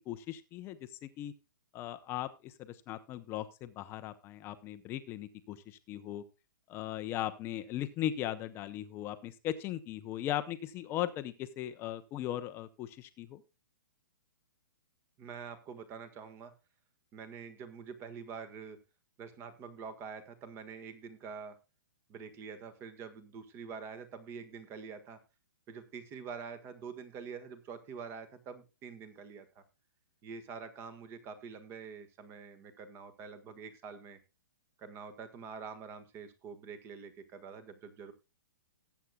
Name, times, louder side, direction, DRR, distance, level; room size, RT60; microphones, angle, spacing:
voice 1, 0.1-1.3 1.7-6.2 6.7-13.4, left 12 dB, 20° left, 11 dB, 0.7 m, -38 dB
voice 2, 15.2-16.5 17.1-18.8 19.2-21.6 22.1-25.2 25.7-29.6 30.2-34.2 34.8-38.1, right 6 dB, 20° right, 11 dB, 1.6 m, -46 dB
19.0 x 8.3 x 2.3 m, 0.29 s
hypercardioid pair, 155°, 11 cm